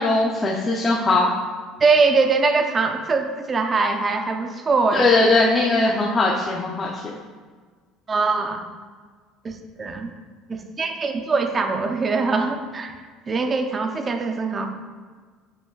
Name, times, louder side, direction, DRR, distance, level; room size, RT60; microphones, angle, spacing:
voice 1, 0.0-1.3 4.9-7.2, left 2 dB, 20° left, -3 dB, 0.6 m, -20 dB
voice 2, 1.8-5.0 8.1-8.6 9.4-10.1 10.5-12.9 13.3-14.7, right 4 dB, 25° right, 5 dB, 0.6 m, -22 dB
8.3 x 5.7 x 2.4 m, 1.5 s
cardioid pair, 135°, 0 cm